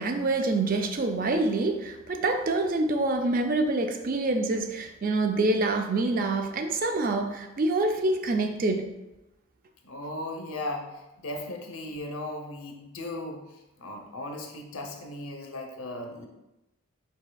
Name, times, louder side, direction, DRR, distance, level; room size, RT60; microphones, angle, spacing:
voice 1, 0.0-8.9, right 2 dB, 40° right, 5 dB, 0.4 m, -26 dB
voice 2, 9.8-13.5 13.8-16.3, left 1 dB, 75° left, 3 dB, 0.7 m, -37 dB
5.5 x 4.2 x 2.3 m, 0.97 s
head